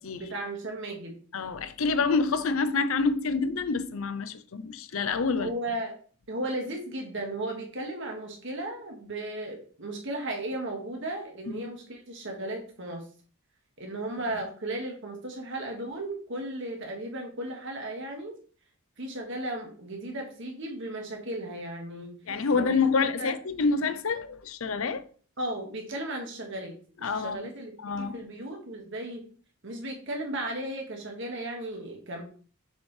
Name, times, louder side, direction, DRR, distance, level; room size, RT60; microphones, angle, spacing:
voice 1, 0.2-1.2 5.4-6.0 6.3-13.0 13.8-18.3 19.0-22.1 22.5-23.4 25.4-29.3 29.6-32.2, right 1 dB, 60° right, 1.9 m, -35 dB
voice 2, 1.3-5.5 22.3-25.0 27.0-27.4 27.8-28.2, left 4 dB, 70° left, 0.6 m, -27 dB
6.9 x 5.3 x 3.3 m
head